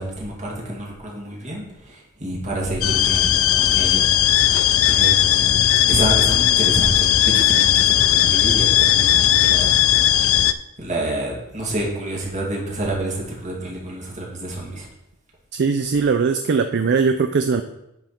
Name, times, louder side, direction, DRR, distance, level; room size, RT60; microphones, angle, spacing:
voice 1, 0.0-5.6 5.9-9.8 10.1-10.3 10.8-14.9, right 1 dB, 35° right, -3 dB, 2.5 m, -28 dB
sound 1, 2.8-10.5, left 12 dB, 65° left, 0.4 m, -17 dB
voice 2, 15.5-17.6, right 5 dB, 50° right, 8 dB, 0.4 m, -20 dB
9.1 x 5.8 x 4.4 m, 0.87 s
head